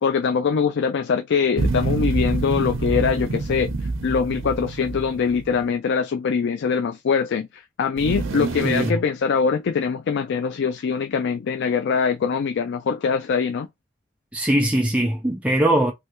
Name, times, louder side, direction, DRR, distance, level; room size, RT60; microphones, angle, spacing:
voice 1, 0.0-3.8 4.0-13.7, left 6 dB, 60° left, 0.4 m, -23 dB
sound 1, 1.6-5.6 8.0-8.9, right 3 dB, 70° right, 0.7 m, -26 dB
voice 2, 8.6-9.0 14.3-15.9, right 1 dB, 5° right, 0.5 m, -21 dB
3.2 x 2.7 x 2.9 m
head